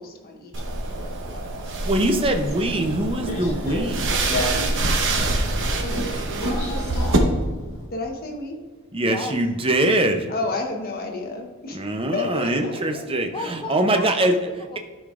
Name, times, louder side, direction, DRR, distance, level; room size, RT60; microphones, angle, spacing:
voice 1, 0.0-1.7 7.9-8.6 10.3-11.8 12.1-13.0, left 3 dB, 40° left, 2 dB, 1.0 m, -32 dB
sound 1, 0.5-7.2, right 2 dB, 55° right, 0.9 m, -26 dB
voice 2, 1.8-4.1 8.9-10.3 11.7-14.4, right 1 dB, 25° right, 5 dB, 0.6 m, -22 dB
Subway metro underground, 2.7-7.9, equal, 65° left, 1.8 m, -32 dB
voice 3, 6.3-6.9 9.0-9.4 10.5-10.6 13.3-14.8, left 2 dB, 25° left, 5 dB, 0.5 m, -36 dB
11.5 x 5.1 x 2.5 m, 1.4 s
head